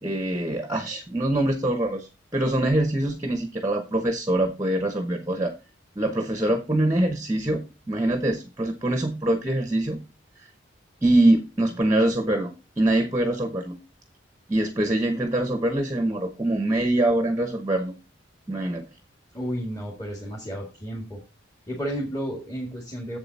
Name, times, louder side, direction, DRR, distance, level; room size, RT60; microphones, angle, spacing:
voice 1, 0.0-5.5 6.0-10.0 10.4-10.5 11.0-13.8 14.5-17.9 18.5-18.9, right 1 dB, 15° right, 6 dB, 1.0 m, -24 dB
voice 2, 19.3-21.2 21.7-23.2, equal, 15° left, -1 dB, 2.0 m, -32 dB
7.8 x 7.7 x 4.1 m, 0.29 s
head